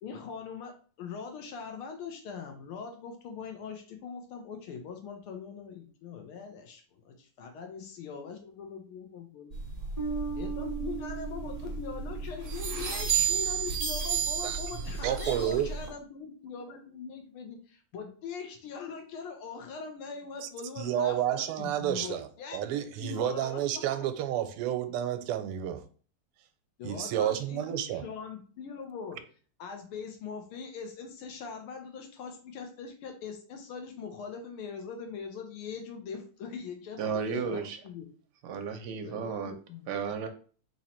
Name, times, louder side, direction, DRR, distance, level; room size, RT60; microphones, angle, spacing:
voice 1, 0.0-9.6 10.4-22.6 22.9-23.8 26.8-29.3 29.6-37.6 37.8-38.1 39.0-39.9, left 6 dB, 80° left, 1.6 m, -42 dB
sound 1, 9.5-15.9, right 6 dB, 50° right, 0.6 m, -33 dB
Bass guitar, 10.0-13.0, right 6 dB, 20° left, 1.0 m, -39 dB
voice 2, 15.0-15.7 20.8-22.3 22.5-25.8 26.8-28.0, right 11 dB, 90° right, 1.5 m, -30 dB
voice 3, 37.0-37.8 38.4-39.5 39.9-40.3, right 6 dB, 70° right, 1.0 m, -33 dB
3.9 x 3.0 x 4.3 m
omnidirectional pair, 2.4 m